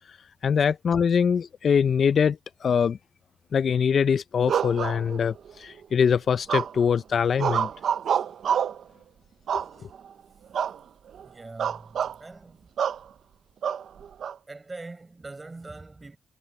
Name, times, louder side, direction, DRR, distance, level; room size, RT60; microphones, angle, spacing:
voice 1, 0.4-3.0 3.5-7.7 9.5-9.6, left 7 dB, 65° left, 0.5 m, -23 dB
sound 1, 4.5-5.5 6.5-7.0 7.4-8.8 9.5-10.1 10.5-10.8 11.1-11.3 11.6-12.2 12.8-13.0 13.6-14.3, right 8 dB, 80° right, 0.6 m, -27 dB
voice 2, 11.2-12.7 14.5-16.2, right 3 dB, 25° right, 6.9 m, -43 dB
cardioid pair, 90°, 0 cm